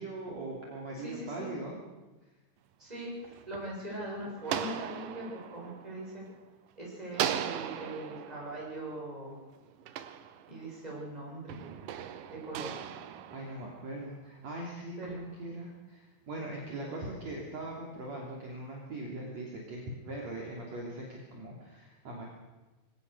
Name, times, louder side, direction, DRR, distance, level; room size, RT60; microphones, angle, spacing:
voice 1, 0.0-1.8 13.3-22.2, right 2 dB, 45° right, -2 dB, 4.0 m, -41 dB
voice 2, 0.9-1.5 2.8-6.2 6.8-9.4 10.5-11.6 12.3-12.8 15.0-15.4, right 1 dB, 10° right, -4 dB, 7.5 m, -41 dB
sound 1, 3.0-6.7 7.1-10.9 11.5-14.2, right 10 dB, 70° right, 2.4 m, -39 dB
23.0 x 18.0 x 6.8 m, 1.2 s
omnidirectional pair, 4.6 m